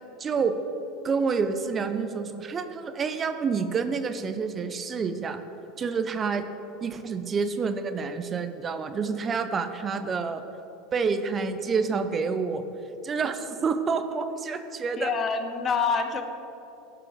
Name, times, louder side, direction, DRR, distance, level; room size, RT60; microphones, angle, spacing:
voice 1, 0.2-0.5 1.0-5.4 5.8-6.5 6.8-10.4 10.9-12.6 13.0-15.1, right 5 dB, 30° right, 9 dB, 0.5 m, -28 dB
voice 2, 15.0-16.2, left 5 dB, 35° left, 8 dB, 0.7 m, -26 dB
11.5 x 4.9 x 4.9 m, 2.9 s
hypercardioid pair, 85°, 0 cm